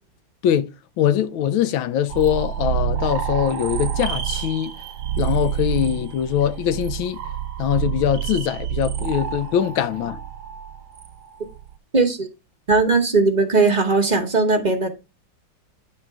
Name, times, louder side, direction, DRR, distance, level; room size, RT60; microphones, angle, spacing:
voice 1, 1.0-4.7 5.2-7.2 7.6-10.2, left 10 dB, 75° left, 1.4 m, -22 dB
sound 1, 2.1-11.7, right 10 dB, 70° right, 1.4 m, -28 dB
voice 2, 11.9-12.3 12.7-14.9, right 3 dB, 30° right, 0.8 m, -18 dB
9.5 x 3.8 x 4.7 m
omnidirectional pair, 2.3 m